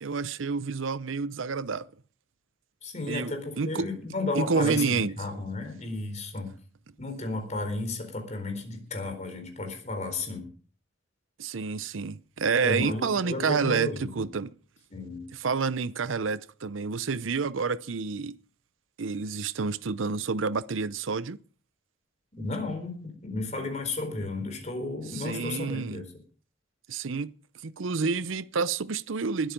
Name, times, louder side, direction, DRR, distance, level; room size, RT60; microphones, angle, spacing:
voice 1, 0.0-1.9 3.0-3.9 4.4-5.1 11.4-14.5 15.3-18.4 19.0-21.4 25.1-26.0 26.9-27.3 27.6-29.5, right 5 dB, 80° right, 0.7 m, -29 dB
voice 2, 2.8-6.5 7.0-10.5 12.6-14.3 14.9-15.2 22.4-26.1, left 2 dB, 35° left, 4.3 m, -33 dB
19.5 x 9.0 x 5.2 m
head